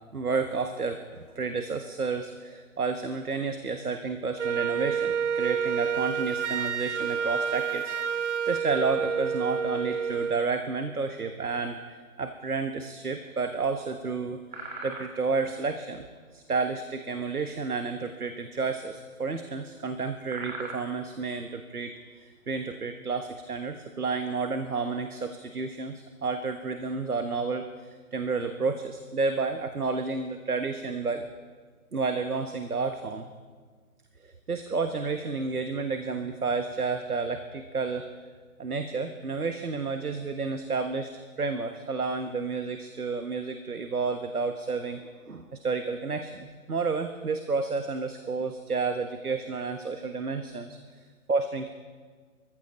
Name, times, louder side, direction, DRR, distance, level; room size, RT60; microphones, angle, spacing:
voice 1, 0.1-16.0 16.3-31.3 31.9-33.3 34.2-38.0 38.6-51.7, right 4 dB, 85° right, 7 dB, 1.3 m, -31 dB
Wind instrument woodwind instrument, 4.4-10.5, right 7 dB, 55° right, 0.7 m, -29 dB
sound 1, 13.3-13.8 14.1-14.2 14.5-15.5 16.0-17.4 17.7-18.0 18.3-18.5 18.7-18.9 19.6-19.8 20.1-21.5 21.8-22.2 22.7-23.8 24.2-24.5 24.9-25.0 25.3-25.7 26.5-26.6 26.9-27.1, right 2 dB, 30° right, 1.9 m, -42 dB
24.5 x 15.0 x 4.0 m, 1.5 s
figure-of-eight pair, 150°, 44 cm